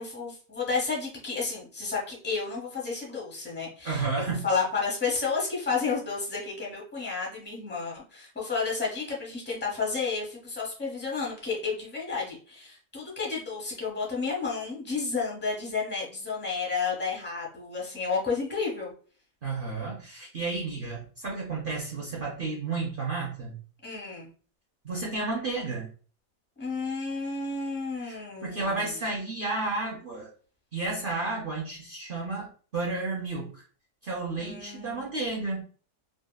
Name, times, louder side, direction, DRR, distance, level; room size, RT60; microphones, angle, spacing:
voice 1, 0.0-18.9 23.8-24.3 26.6-29.1 34.4-35.1, left 4 dB, 10° left, -4 dB, 0.5 m, -31 dB
voice 2, 3.8-4.5 19.4-23.6 24.8-25.9 28.0-30.3 30.7-33.6 34.0-35.6, right 3 dB, 65° right, -2 dB, 0.5 m, -32 dB
2.8 x 2.6 x 2.2 m, 0.40 s
omnidirectional pair, 1.7 m